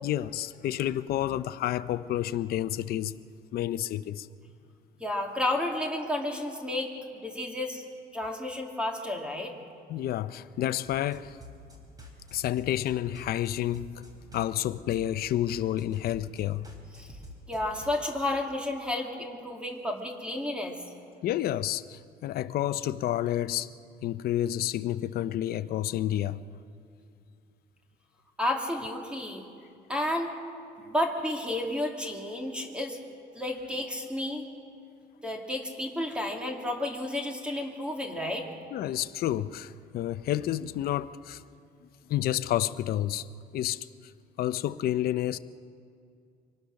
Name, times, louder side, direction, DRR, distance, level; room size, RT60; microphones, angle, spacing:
voice 1, 0.0-3.1 3.5-4.3 9.9-11.4 12.3-14.0 14.3-16.7 21.2-23.7 24.0-26.4 38.7-41.4 42.1-43.3 43.5-43.9 44.4-45.4, left 12 dB, 65° left, 0.7 m, -30 dB
voice 2, 5.0-7.8 8.1-9.5 16.9-17.1 17.5-20.8 28.4-29.4 29.9-30.3 30.9-33.0 33.3-34.4 35.2-38.5, left 1 dB, 5° right, 2.4 m, -31 dB
sound 1, 10.9-18.0, left 1 dB, 20° right, 3.9 m, -49 dB
24.5 x 18.5 x 6.5 m
cardioid pair, 110°, 17 cm